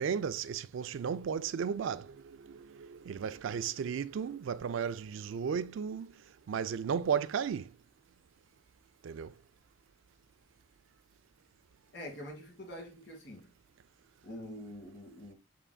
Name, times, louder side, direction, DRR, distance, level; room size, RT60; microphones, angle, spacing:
voice 1, 0.0-6.1 6.5-7.7 9.0-9.3, right 7 dB, 70° right, 0.3 m, -34 dB
voice 2, 11.9-13.5 14.2-15.3, equal, 60° left, 1.6 m, -45 dB
5.6 x 3.8 x 2.2 m
head